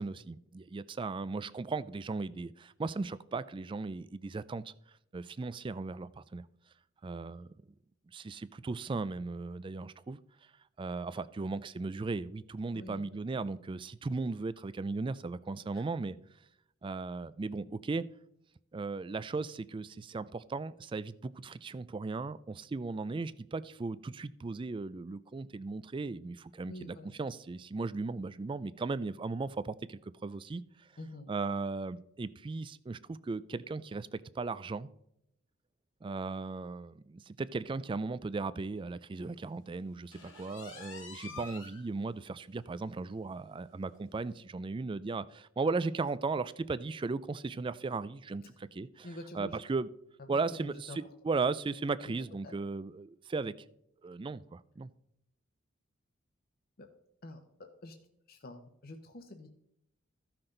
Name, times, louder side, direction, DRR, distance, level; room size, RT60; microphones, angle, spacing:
voice 1, 0.0-4.7 5.1-6.5 7.0-7.5 8.1-10.2 10.8-16.2 16.8-18.1 18.7-30.9 31.3-34.9 36.0-49.1 49.3-49.9 50.3-53.5 54.0-54.9, right 3 dB, 25° right, 0.3 m, -37 dB
voice 2, 12.7-13.0 15.7-15.9 26.7-27.1 31.0-31.3 41.2-41.5 49.0-49.6 50.2-51.0 52.4-52.6 56.8-56.9 57.2-57.4 57.8-57.9 58.3-59.5, left 1 dB, 45° left, 0.9 m, -47 dB
sound 1, 40.1-41.8 42.3-42.4 42.8-42.9 43.3-43.4 44.3-44.4, left 4 dB, 70° left, 2.2 m, -47 dB
14.5 x 5.9 x 3.8 m
head